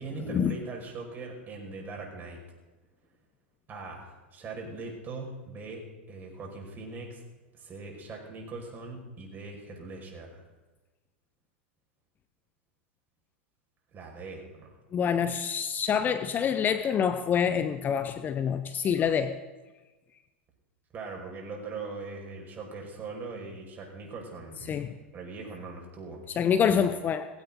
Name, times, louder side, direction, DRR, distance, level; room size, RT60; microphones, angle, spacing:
voice 1, 0.0-2.4 3.7-7.2 7.5-10.4 13.9-14.8 20.9-24.8 25.1-26.2, right 3 dB, 30° right, 0 dB, 5.5 m, -41 dB
voice 2, 14.9-19.4 24.7-24.9 26.4-27.3, left 7 dB, 30° left, 10 dB, 0.9 m, -26 dB
19.0 x 16.0 x 3.9 m, 1.2 s
hypercardioid pair, 105°, 6 cm